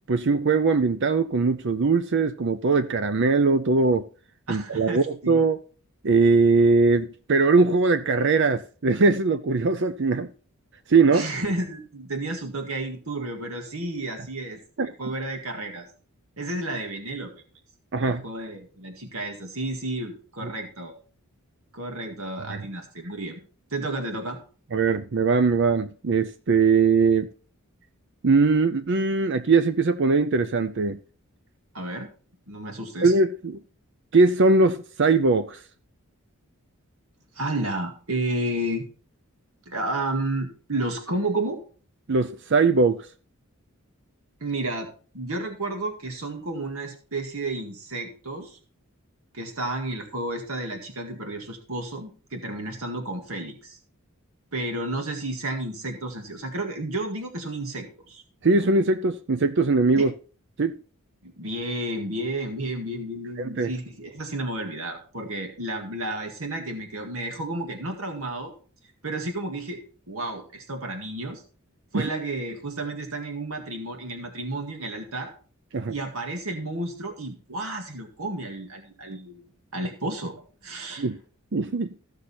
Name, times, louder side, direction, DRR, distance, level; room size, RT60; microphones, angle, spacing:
voice 1, 0.1-4.0 4.5-5.6 6.0-10.3 10.9-11.2 14.8-14.9 17.9-18.2 22.5-22.6 24.7-27.3 28.2-31.0 33.0-33.6 34.1-35.6 42.1-43.1 58.4-60.1 60.6-60.7 63.4-63.7 71.9-72.1 75.7-75.9 81.0-81.2 81.5-81.9, right 4 dB, 55° right, 0.6 m, -21 dB
voice 2, 4.5-5.4 11.1-15.9 16.4-17.3 18.0-20.9 21.7-23.4 23.7-24.4 31.7-32.1 32.5-33.1 37.4-38.8 39.7-41.6 44.4-44.9 45.1-48.6 49.3-53.8 54.5-58.2 60.0-60.1 61.2-68.5 69.0-69.8 70.1-71.4 71.9-75.3 75.9-79.4 79.7-80.3 80.6-81.1, right 2 dB, 70° right, 2.0 m, -32 dB
15.0 x 6.6 x 4.3 m
head